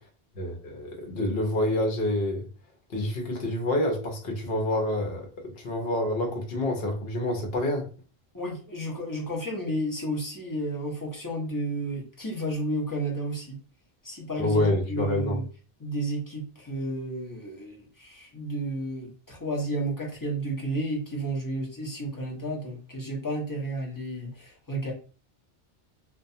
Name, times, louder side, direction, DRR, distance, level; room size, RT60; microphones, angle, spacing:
voice 1, 0.4-2.4 2.9-5.3 5.6-7.8 14.4-15.4, left 1 dB, 65° left, 2 dB, 0.9 m, -27 dB
voice 2, 8.3-13.6 14.0-15.4 15.8-24.9, right 1 dB, 20° left, -2 dB, 0.6 m, -32 dB
2.3 x 2.2 x 2.6 m, 0.37 s
omnidirectional pair, 1.2 m